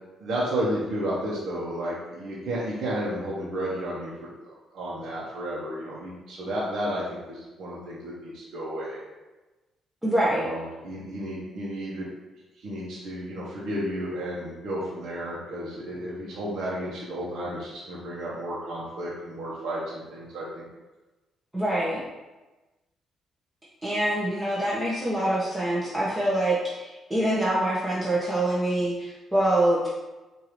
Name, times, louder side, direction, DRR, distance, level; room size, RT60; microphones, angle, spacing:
voice 1, 0.2-4.3 4.7-9.0 10.3-12.1 12.6-20.6, right 1 dB, 65° right, -7 dB, 0.9 m, -32 dB
voice 2, 10.0-10.5 21.5-22.0 23.8-29.9, right 1 dB, 10° right, -7 dB, 0.9 m, -25 dB
4.7 x 2.6 x 3.1 m, 1.1 s
cardioid pair, 90°, 0 cm